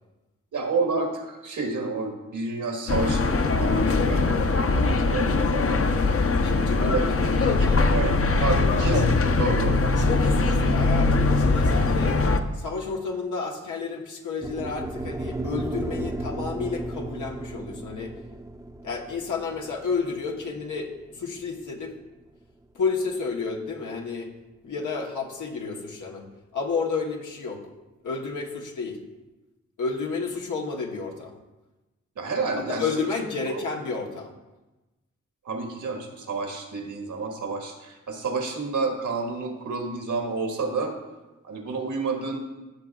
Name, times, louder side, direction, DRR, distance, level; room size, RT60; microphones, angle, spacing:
voice 1, 0.5-6.5 6.8-7.3 7.6-9.8 32.1-32.8 33.5-33.6 35.4-40.9 41.4-42.4, right 3 dB, 85° right, 2 dB, 1.6 m, -30 dB
sound 1, 2.9-12.4, left 3 dB, 50° left, 0.8 m, -21 dB
voice 2, 6.4-7.8 8.3-8.6 10.0-12.2 12.5-18.1 18.8-21.9 22.7-24.3 24.6-26.3 26.5-27.6 28.0-29.0 29.8-31.3 32.5-34.3, left 4 dB, 85° left, 0 dB, 1.2 m, -31 dB
sound 2, 14.4-22.6, right 2 dB, 10° right, 0.6 m, -35 dB
14.5 x 6.6 x 2.4 m, 1.1 s
cardioid pair, 50°, 30 cm